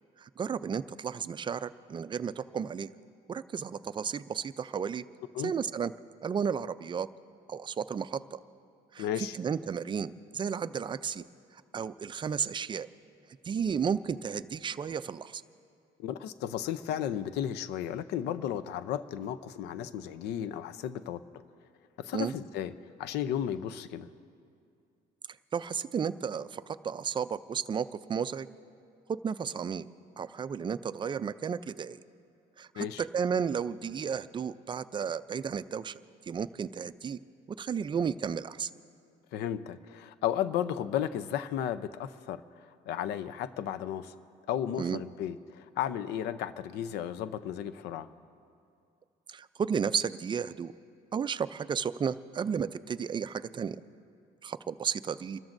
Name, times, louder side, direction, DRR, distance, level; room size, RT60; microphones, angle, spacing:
voice 1, 0.2-2.9 3.3-5.0 5.4-5.9 6.2-7.1 7.5-8.4 8.9-11.2 11.7-12.9 13.4-15.4 22.1-22.3 25.5-28.5 29.1-29.8 30.2-32.0 32.6-36.0 36.3-37.2 37.6-38.7 44.8-45.0 49.3-50.7 51.1-53.8 54.4-55.4, right 7 dB, 30° right, 14 dB, 0.4 m, -33 dB
voice 2, 9.0-9.4 16.0-21.2 22.0-22.7 23.0-24.1 32.8-33.0 39.3-42.4 42.9-44.1 44.5-48.1, left 10 dB, 85° left, 13 dB, 0.6 m, -34 dB
29.0 x 13.5 x 2.6 m, 2.4 s
cardioid pair, 110°, 17 cm